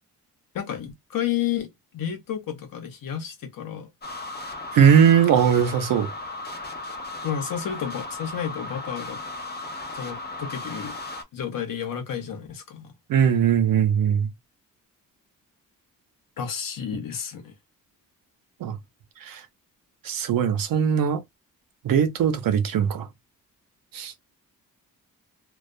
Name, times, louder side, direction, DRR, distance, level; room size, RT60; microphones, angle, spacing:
voice 1, 0.5-3.9 7.2-9.2 9.9-11.0 11.3-12.9 16.4-17.5, left 9 dB, 75° left, 0.8 m, -31 dB
sound 1, 4.0-11.2, left 2 dB, 30° left, 0.6 m, -36 dB
voice 2, 4.7-6.1 13.1-14.3 18.6-18.8 19.3-19.4 20.0-21.2 21.8-23.1 23.9-24.1, right 8 dB, 75° right, 0.6 m, -20 dB
2.3 x 2.2 x 2.5 m
cardioid pair, 90°, 34 cm